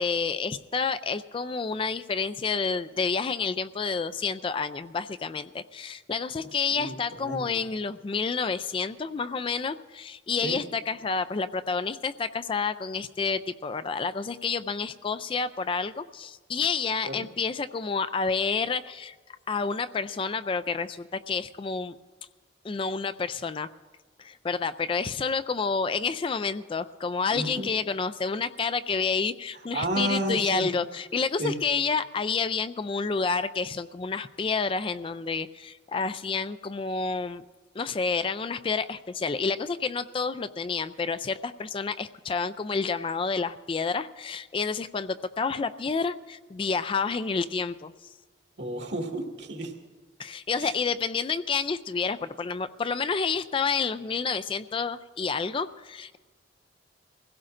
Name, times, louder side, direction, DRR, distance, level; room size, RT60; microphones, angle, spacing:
voice 1, 0.0-19.1 19.5-21.9 22.6-23.7 24.2-37.4 37.8-47.9 50.2-56.2, left 5 dB, 30° left, 12 dB, 0.3 m, -29 dB
voice 2, 6.7-7.6 10.4-10.6 17.0-17.3 27.3-27.8 29.7-30.7 31.4-31.5 48.6-49.7 50.6-50.8, right 1 dB, 70° right, 2 dB, 2.0 m, -32 dB
24.5 x 16.5 x 2.5 m, 1.3 s
head